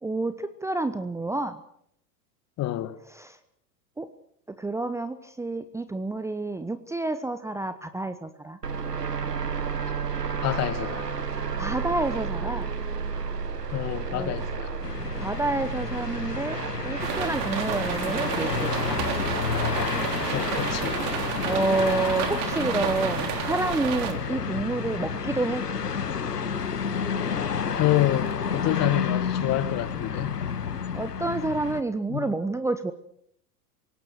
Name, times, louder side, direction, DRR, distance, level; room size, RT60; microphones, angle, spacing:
voice 1, 0.0-1.6 3.1-3.4 4.0-4.1 4.6-8.6 11.6-12.7 14.1-14.3 15.2-16.6 16.8-19.0 21.4-25.6 30.9-32.9, right 2 dB, 5° right, 0.9 m, -29 dB
voice 2, 2.6-3.0 10.4-11.1 13.7-14.7 20.3-21.0 27.8-30.4 32.1-32.3, left 15 dB, 35° left, 1.6 m, -27 dB
sound 1, 8.6-28.3, right 5 dB, 85° right, 1.6 m, -34 dB
sound 2, 14.8-31.8, left 7 dB, 80° left, 1.5 m, -30 dB
sound 3, 17.0-24.1, right 9 dB, 45° right, 3.7 m, -31 dB
27.5 x 18.0 x 6.5 m
figure-of-eight pair, 90°, 47 cm